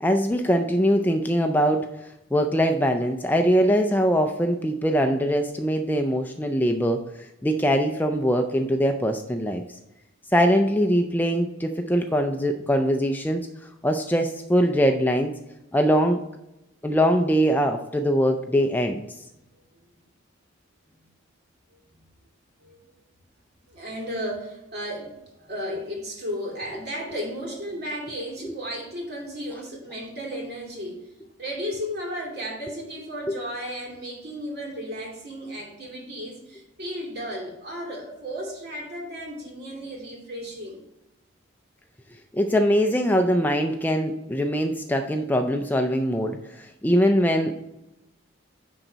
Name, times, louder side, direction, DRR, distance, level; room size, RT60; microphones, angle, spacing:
voice 1, 0.0-9.8 10.3-13.5 13.8-15.3 15.7-16.2 16.8-19.0 28.4-28.5 42.3-47.5, equal, 10° left, 5 dB, 0.4 m, -22 dB
voice 2, 23.7-31.0 31.4-40.8, equal, 50° right, -2 dB, 2.6 m, -34 dB
10.0 x 3.9 x 4.5 m, 0.90 s
head